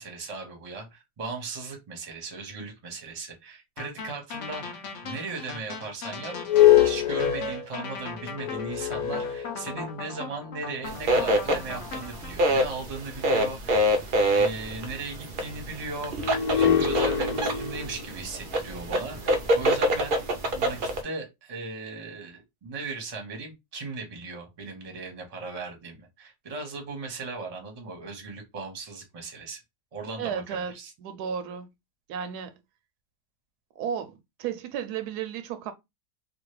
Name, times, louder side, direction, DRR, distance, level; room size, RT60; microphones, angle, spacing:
voice 1, 0.0-6.3 6.8-14.0 14.3-20.2 20.5-29.6 29.9-30.9, right 3 dB, 30° right, 0.8 m, -37 dB
sound 1, 3.8-12.3, left 4 dB, 60° left, 0.9 m, -39 dB
sound 2, 6.3-10.2 10.9-11.0 16.2-20.5, left 10 dB, 75° left, 1.4 m, -25 dB
sound 3, 10.9-21.0, right 1 dB, 75° right, 0.4 m, -26 dB
voice 2, 30.2-30.7 31.0-31.7 32.1-32.5 33.8-35.7, right 7 dB, 90° right, 1.1 m, -33 dB
3.0 x 2.4 x 3.0 m
omnidirectional pair, 1.6 m